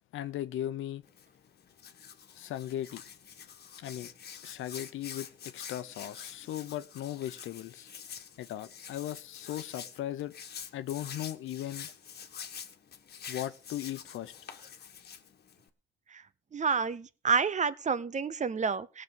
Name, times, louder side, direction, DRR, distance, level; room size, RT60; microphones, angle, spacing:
voice 1, 0.1-1.0 2.4-3.0 3.8-4.1 4.4-5.3 5.5-7.9 8.4-10.3 10.7-11.9 13.3-14.3, left 12 dB, 85° left, 0.9 m, -37 dB
Hands, 1.0-15.7, left 7 dB, 55° left, 1.5 m, -47 dB
voice 2, 16.5-19.0, right 5 dB, 35° right, 0.8 m, -29 dB
18.0 x 6.7 x 5.4 m
cardioid pair, 90°, 20 cm